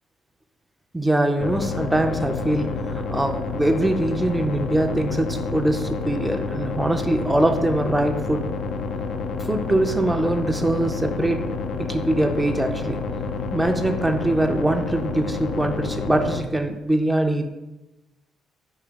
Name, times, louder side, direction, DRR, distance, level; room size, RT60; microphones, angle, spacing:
voice 1, 0.9-8.5 9.4-11.4 11.8-13.0 13.5-17.5, right 1 dB, 10° right, 4 dB, 0.4 m, -23 dB
sound 1, 1.4-16.4, left 4 dB, 70° left, 0.4 m, -29 dB
3.9 x 2.8 x 4.6 m, 1.0 s
cardioid pair, 90°, 0 cm